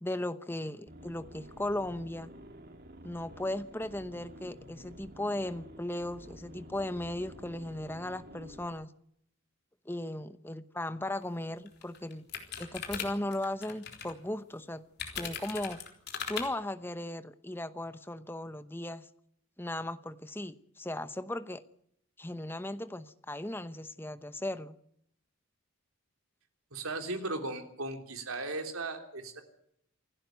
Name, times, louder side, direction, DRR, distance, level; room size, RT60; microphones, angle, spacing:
voice 1, 0.0-2.3 3.0-8.9 9.8-12.3 12.6-14.9 15.1-15.8 16.3-19.1 19.6-21.6 22.2-24.8, left 1 dB, 10° left, 12 dB, 0.9 m, -37 dB
sound 1, 0.9-8.7, equal, 45° right, 2.3 m, -50 dB
sound 2, 11.2-11.3 11.7-14.1 15.0-16.5, left 7 dB, 50° left, 3.7 m, -39 dB
voice 2, 26.7-29.4, right 2 dB, 80° right, 5 dB, 3.4 m, -37 dB
28.0 x 11.5 x 9.3 m, 0.71 s
head